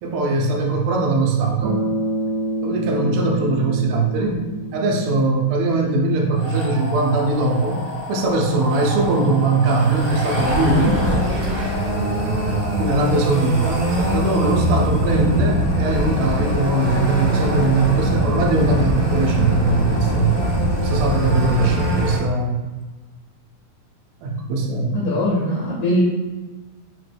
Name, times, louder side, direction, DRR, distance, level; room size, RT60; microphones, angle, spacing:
voice 1, 0.0-1.8 2.6-4.4 4.7-7.8 8.1-11.0 12.8-20.4 20.8-22.6 24.2-25.1, right 3 dB, 90° right, 0 dB, 2.5 m, -20 dB
Bass guitar, 1.6-5.8, right 2 dB, 70° right, 2.2 m, -28 dB
sound 1, 6.4-22.2, right 1 dB, 50° right, 1.6 m, -23 dB
voice 2, 24.9-26.0, left 1 dB, 80° left, -4 dB, 1.8 m, -21 dB
5.7 x 2.2 x 3.3 m, 1.3 s
omnidirectional pair, 4.3 m